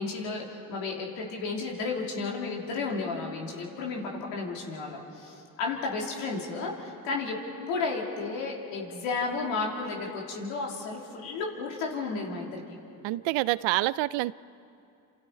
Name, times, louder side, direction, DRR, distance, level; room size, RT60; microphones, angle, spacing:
voice 1, 0.0-7.4 7.7-12.6, left 4 dB, 90° left, -1 dB, 3.0 m, -33 dB
voice 2, 13.0-14.3, right 18 dB, 80° right, 19 dB, 0.6 m, -27 dB
28.5 x 27.0 x 4.5 m, 2.7 s
hypercardioid pair, 50°, 44 cm